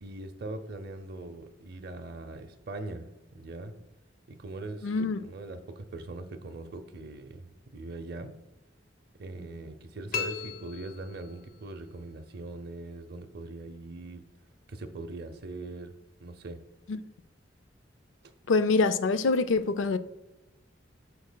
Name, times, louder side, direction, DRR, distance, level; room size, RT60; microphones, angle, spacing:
voice 1, 0.0-3.1 3.3-3.8 4.3-7.4 7.7-8.3 9.2-14.2 14.7-16.6, right 2 dB, 55° right, 0.6 m, -41 dB
voice 2, 4.8-5.2 16.9-17.0 18.5-20.0, left 3 dB, 80° left, 0.4 m, -25 dB
sound 1, 10.1-11.7, left 6 dB, 45° left, 0.7 m, -36 dB
12.0 x 4.1 x 2.2 m
head